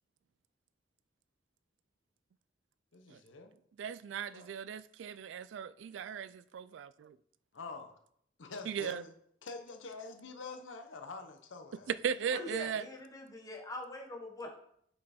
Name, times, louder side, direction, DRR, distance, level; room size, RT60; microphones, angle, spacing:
voice 1, 2.9-3.5 4.3-4.5 7.5-8.0 8.4-9.1 9.4-11.9, left 3 dB, 80° left, 0.9 m, -46 dB
voice 2, 3.8-7.2 8.7-9.0 11.9-12.8, right 7 dB, 70° right, 0.3 m, -37 dB
voice 3, 12.3-14.6, left 1 dB, 20° left, 1.1 m, -43 dB
6.9 x 5.4 x 4.3 m
head